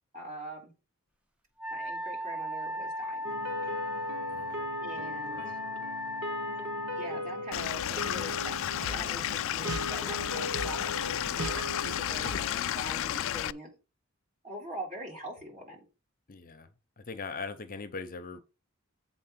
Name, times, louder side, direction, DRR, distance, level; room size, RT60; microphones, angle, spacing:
voice 1, 0.1-0.7 1.7-3.3 4.8-5.6 6.9-13.7 14.4-15.9, right 1 dB, 40° right, 3.8 m, -43 dB
Wind instrument woodwind instrument, 1.6-7.1, left 1 dB, 5° right, 0.6 m, -36 dB
sound 1, 3.2-12.6, equal, 85° right, 1.7 m, -38 dB
voice 2, 4.3-4.8 5.3-5.5 12.2-12.4 16.3-16.7 17.0-18.5, left 4 dB, 40° left, 0.7 m, -41 dB
Stream / Liquid, 7.5-13.5, left 12 dB, 65° left, 0.3 m, -32 dB
7.6 x 4.3 x 5.8 m
head